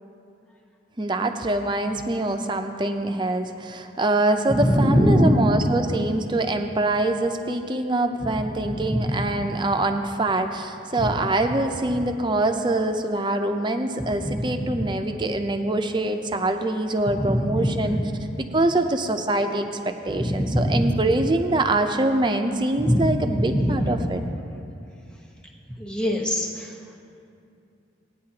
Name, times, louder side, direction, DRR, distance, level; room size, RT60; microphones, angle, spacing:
voice 1, 1.0-18.0 18.4-24.2, right 2 dB, 25° right, 6 dB, 0.5 m, -24 dB
voice 2, 4.5-5.4 8.7-9.3 11.0-11.1 14.2-14.9 17.1-18.0 20.1-21.0 22.8-24.0 25.8-26.7, equal, 5° left, -2 dB, 1.1 m, -23 dB
17.5 x 9.5 x 2.9 m, 2.5 s
head